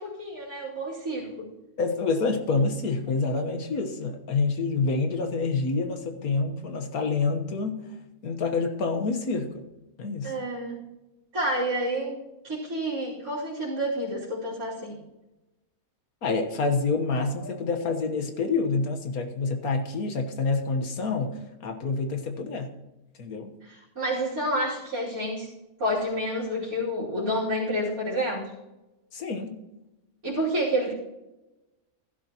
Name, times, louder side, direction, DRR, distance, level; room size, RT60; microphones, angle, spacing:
voice 1, 0.0-1.5 10.2-10.8 11.3-12.2 12.4-15.0 17.4-17.5 23.6-25.5 25.8-28.5 30.2-30.9, equal, 75° right, -11 dB, 3.7 m, -29 dB
voice 2, 1.8-7.9 8.2-9.7 10.0-10.3 16.2-22.7 23.2-23.5 29.1-29.6, left 4 dB, 85° left, 6 dB, 1.7 m, -27 dB
15.5 x 12.0 x 3.0 m, 1.0 s
omnidirectional pair, 1.5 m